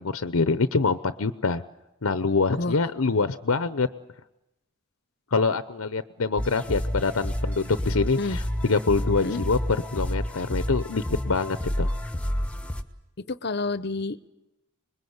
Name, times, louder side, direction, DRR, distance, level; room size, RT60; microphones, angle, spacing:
voice 1, 0.0-1.6 2.0-3.9 5.3-9.6 9.9-11.9, left 4 dB, 85° left, 12 dB, 0.8 m, -25 dB
sound 1, 6.4-12.8, equal, 5° left, 1.2 m, -30 dB
voice 2, 13.3-14.3, left 3 dB, 50° left, 15 dB, 0.9 m, -29 dB
26.0 x 21.5 x 8.1 m, 0.93 s
head